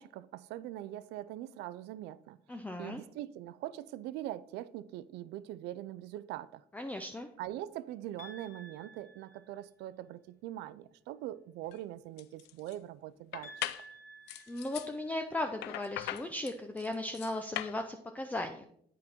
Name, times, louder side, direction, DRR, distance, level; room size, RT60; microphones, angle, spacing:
voice 1, 0.0-2.4 2.8-6.6 7.4-13.5, right 13 dB, 85° right, 0.4 m, -42 dB
voice 2, 2.5-3.0 6.7-7.3 14.5-18.6, left 1 dB, 10° left, 0.5 m, -37 dB
sound 1, 8.2-9.8 13.4-15.4, right 1 dB, 55° left, 2.8 m, -53 dB
sound 2, 11.6-11.8 12.2-12.7 13.3-13.9 14.3-14.9 15.6-17.8, left 14 dB, 80° left, 0.4 m, -40 dB
8.4 x 5.0 x 4.3 m
cardioid pair, 110°, 17 cm